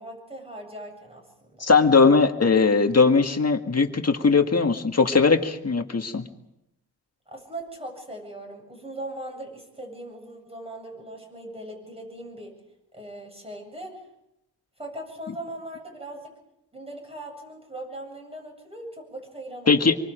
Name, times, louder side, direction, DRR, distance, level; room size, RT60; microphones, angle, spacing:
voice 1, 0.0-1.6 7.3-12.6 12.9-13.9 14.8-16.3 16.7-19.8, right 1 dB, 15° right, 2 dB, 7.6 m, -39 dB
voice 2, 1.6-6.2 19.7-20.0, left 4 dB, 40° left, 5 dB, 2.0 m, -19 dB
26.5 x 24.5 x 5.2 m, 0.86 s
wide cardioid pair, 90°, 39 cm